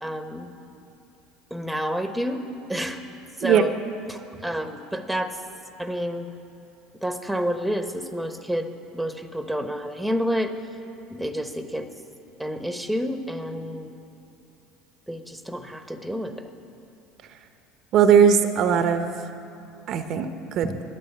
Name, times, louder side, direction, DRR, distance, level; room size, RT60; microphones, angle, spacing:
voice 1, 0.0-0.5 1.5-2.4 2.7-3.0 3.4-3.7 4.1-5.4 5.8-6.3 7.0-8.7 8.9-10.5 11.1-11.9 12.4-13.9 15.1-16.5 20.6-20.8, equal, ahead, 8 dB, 1.0 m, -29 dB
voice 2, 17.9-19.1 19.9-20.7, right 7 dB, 55° right, 9 dB, 0.7 m, -19 dB
11.0 x 9.6 x 8.2 m, 2.7 s
hypercardioid pair, 80°, 0 cm